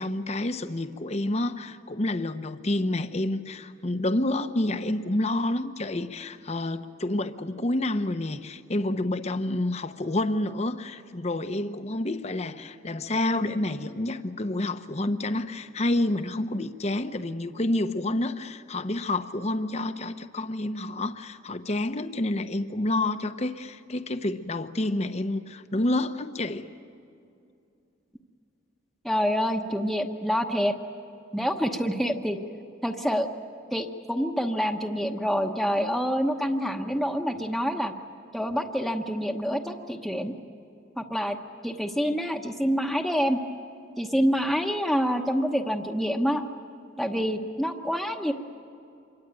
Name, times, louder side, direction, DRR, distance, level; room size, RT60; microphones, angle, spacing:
voice 1, 0.0-26.7, left 1 dB, 35° left, 10 dB, 0.9 m, -29 dB
voice 2, 29.0-30.8 31.3-32.4 32.8-33.3 33.7-37.9 38.3-40.3 41.0-41.4 41.6-43.4 44.0-46.4 47.0-48.3, equal, ahead, 3 dB, 1.1 m, -27 dB
27.0 x 23.5 x 9.0 m, 2.6 s
head